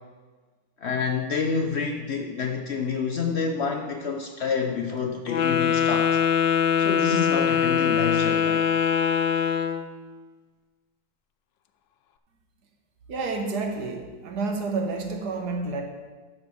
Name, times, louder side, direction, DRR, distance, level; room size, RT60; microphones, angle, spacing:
voice 1, 0.8-6.2 6.8-8.7, left 5 dB, 70° left, 3 dB, 0.6 m, -28 dB
Wind instrument woodwind instrument, 5.3-9.9, left 8 dB, 85° left, 1.3 m, -22 dB
voice 2, 13.1-15.8, right 3 dB, 65° right, 3 dB, 1.5 m, -29 dB
11.5 x 4.1 x 6.9 m, 1.4 s
omnidirectional pair, 1.9 m